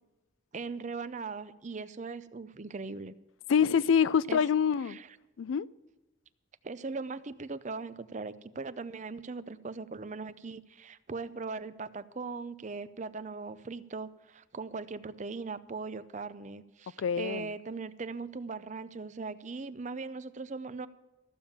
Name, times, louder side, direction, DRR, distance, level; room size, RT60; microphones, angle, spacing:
voice 1, 0.5-3.1 4.3-4.4 4.9-5.1 6.6-20.9, right 4 dB, 40° right, 0.5 m, -39 dB
voice 2, 3.5-5.0 5.4-5.7 17.0-17.5, left 7 dB, 85° left, 0.4 m, -26 dB
14.5 x 7.3 x 8.6 m
head